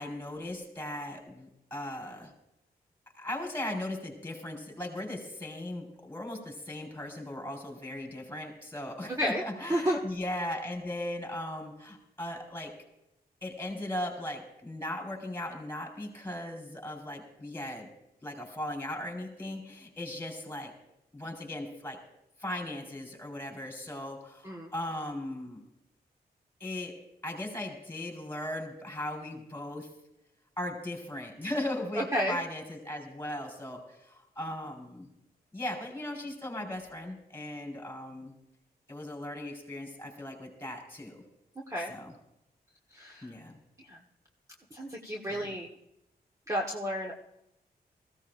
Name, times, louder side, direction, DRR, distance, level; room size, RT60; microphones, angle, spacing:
voice 1, 0.0-2.3 3.1-12.7 13.4-17.9 18.2-20.7 21.1-22.0 22.4-25.6 26.6-27.0 27.2-29.9 30.6-35.1 35.5-38.3 38.9-41.2 41.9-42.1 43.2-43.6 45.3-45.5, left 1 dB, 15° left, 1 dB, 4.4 m, -38 dB
voice 2, 9.7-10.0 24.4-24.7 32.1-32.4 41.7-41.9 42.9-43.3 43.9-44.0 44.7-45.7 46.5-47.1, equal, 20° right, 0 dB, 1.3 m, -31 dB
19.5 x 15.5 x 2.5 m, 0.83 s
cardioid pair, 85°, 17 cm